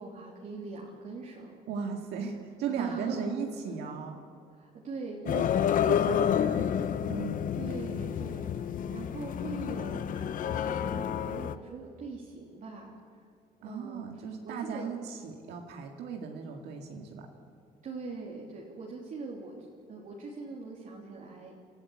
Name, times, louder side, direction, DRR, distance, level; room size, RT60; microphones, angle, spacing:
voice 1, 0.0-1.6 2.8-3.3 4.5-6.7 7.5-12.9 13.6-14.9 17.8-19.6 19.9-21.5, right 4 dB, 50° right, -3 dB, 3.1 m, -42 dB
voice 2, 1.7-4.2 5.3-5.5 5.9-6.7 7.1-7.5 13.6-17.3, right 6 dB, 80° right, 2 dB, 2.1 m, -37 dB
sound 1, 5.3-11.6, left 9 dB, 50° left, 0.8 m, -29 dB
26.5 x 14.0 x 8.6 m, 2.3 s
cardioid pair, 110°, 17 cm